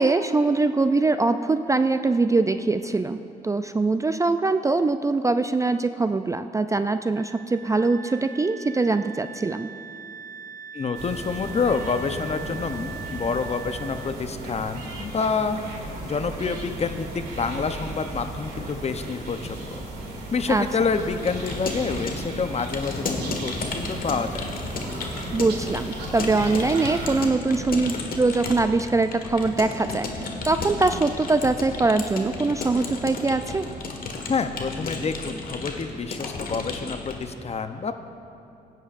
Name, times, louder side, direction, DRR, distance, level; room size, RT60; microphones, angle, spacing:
voice 1, 0.0-9.7 20.5-20.6 25.3-33.7, right 3 dB, 15° right, 10 dB, 0.4 m, -23 dB
Wind instrument woodwind instrument, 7.1-14.2, right 6 dB, 50° right, 0.7 m, -41 dB
voice 2, 10.7-15.6 16.1-19.6 20.3-24.5 34.3-37.9, left 5 dB, 35° left, 8 dB, 0.8 m, -28 dB
sound 1, 10.9-27.3, right 2 dB, 65° right, 2.5 m, -36 dB
Keyboard (musical) / Computer keyboard, 21.2-37.3, left 3 dB, 55° left, 1.6 m, -33 dB
16.5 x 9.5 x 2.5 m, 2.7 s
supercardioid pair, 55°, 18 cm